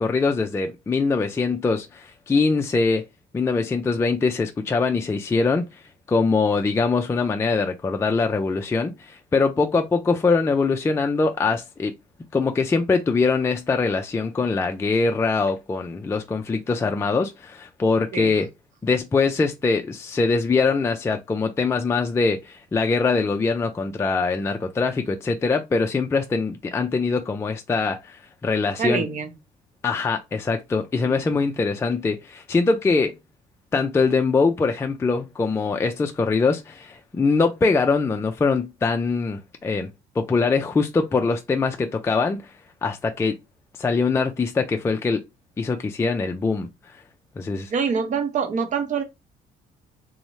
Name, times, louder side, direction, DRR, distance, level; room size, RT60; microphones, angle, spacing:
voice 1, 0.0-3.0 3.3-5.6 6.1-11.9 12.3-18.5 18.8-29.0 29.8-33.2 33.7-39.9 40.2-42.4 42.8-43.4 43.8-45.2 45.6-46.7 47.4-47.7, left 4 dB, 15° left, 0.3 m, -23 dB
voice 2, 28.8-29.3 31.0-31.2 47.7-49.0, right 6 dB, 45° right, 0.7 m, -25 dB
2.6 x 2.0 x 3.0 m
cardioid pair, 110°, 17 cm